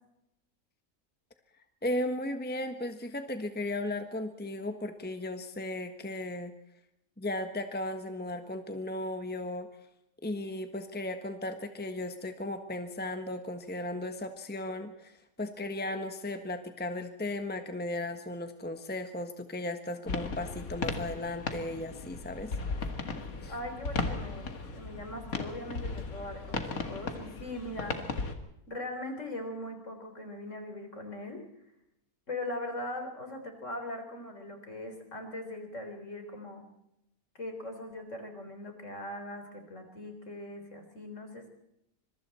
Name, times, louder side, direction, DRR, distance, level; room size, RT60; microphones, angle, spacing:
voice 1, 1.8-6.6 7.2-9.7 10.2-22.5 23.4-23.5, left 1 dB, 5° left, 7 dB, 1.3 m, -36 dB
sound 1, 20.1-28.3, left 4 dB, 75° left, 2.4 m, -36 dB
voice 2, 23.5-28.0 28.7-31.4 32.3-36.7 37.4-41.5, left 1 dB, 55° left, 5 dB, 4.4 m, -40 dB
26.0 x 23.0 x 4.3 m, 0.82 s
omnidirectional pair, 1.5 m